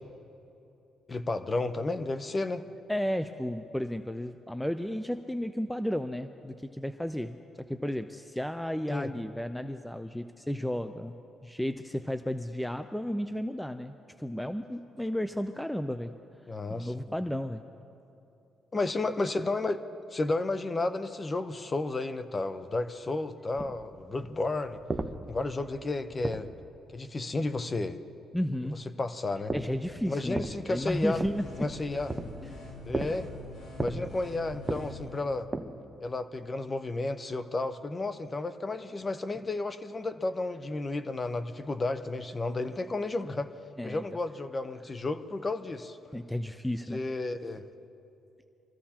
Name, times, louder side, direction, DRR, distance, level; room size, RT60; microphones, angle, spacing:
voice 1, 1.1-2.7 8.9-9.1 16.5-17.0 18.7-19.8 20.1-24.8 25.3-26.5 26.9-28.0 29.0-29.5 30.1-31.2 31.6-32.1 32.8-33.3 33.8-35.5 36.0-43.5 43.8-46.0 46.9-47.6, left 2 dB, 30° left, 10 dB, 0.8 m, -32 dB
voice 2, 2.9-11.1 11.4-13.9 14.2-16.1 16.7-17.6 28.3-28.8 29.5-30.4 30.7-31.7 32.4-32.7 43.8-44.0 46.1-47.0, equal, 5° left, 9 dB, 0.5 m, -33 dB
sound 1, 23.6-27.0 29.4-36.1, right 2 dB, 20° right, 0.9 m, -38 dB
sound 2, 30.8-35.2, left 2 dB, 65° left, 4.1 m, -45 dB
25.0 x 14.5 x 2.9 m, 2.8 s
cardioid pair, 90°, 0 cm